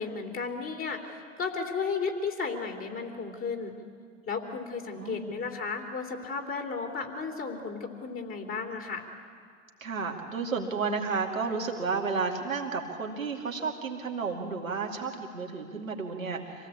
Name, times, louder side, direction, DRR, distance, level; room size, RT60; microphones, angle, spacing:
voice 1, 0.0-3.7 4.3-9.0, left 5 dB, 35° left, 2 dB, 3.3 m, -34 dB
voice 2, 5.0-5.3 9.8-16.7, right 4 dB, 85° right, 1 dB, 2.7 m, -32 dB
26.5 x 16.5 x 8.6 m, 2.1 s
figure-of-eight pair, 75°, 39 cm